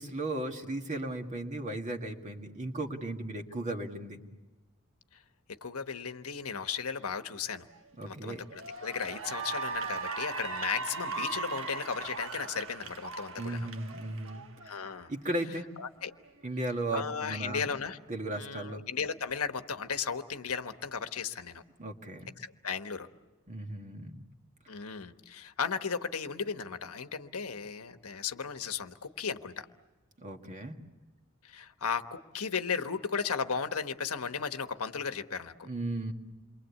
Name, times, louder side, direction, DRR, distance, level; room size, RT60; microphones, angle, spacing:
voice 1, 0.0-4.2 8.0-8.4 13.4-14.4 15.1-15.7 16.4-17.7 18.1-18.8 21.8-22.3 23.5-24.2 30.2-30.8 35.6-36.1, right 2 dB, 35° right, 4 dB, 1.9 m, -36 dB
voice 2, 5.5-7.7 8.0-13.7 14.6-15.1 15.8-16.1 16.9-18.0 18.3-21.6 22.4-23.1 24.7-29.7 31.4-35.7, left 6 dB, 90° left, 8 dB, 1.2 m, -35 dB
Cheering / Applause, 7.8-8.0 8.5-15.0, right 4 dB, 60° right, 1.3 m, -38 dB
28.5 x 23.0 x 8.4 m, 1.2 s
head